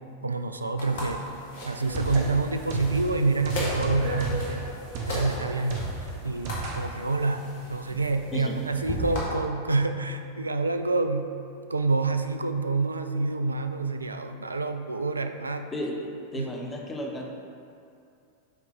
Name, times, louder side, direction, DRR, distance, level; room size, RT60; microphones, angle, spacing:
voice 1, 0.2-1.3 1.6-4.7 5.1-5.9 6.2-11.4 11.7-15.7 16.4-16.5, right 3 dB, 80° right, 8 dB, 0.3 m, -27 dB
sound 1, 0.8-9.2, left 1 dB, 55° left, 1.4 m, -37 dB
sound 2, 1.6-6.8, right 3 dB, 45° right, 1.0 m, -33 dB
voice 2, 15.7-17.3, left 1 dB, 15° left, 0 dB, 0.8 m, -33 dB
6.7 x 3.9 x 4.3 m, 2.5 s
figure-of-eight pair, 90°, 0 cm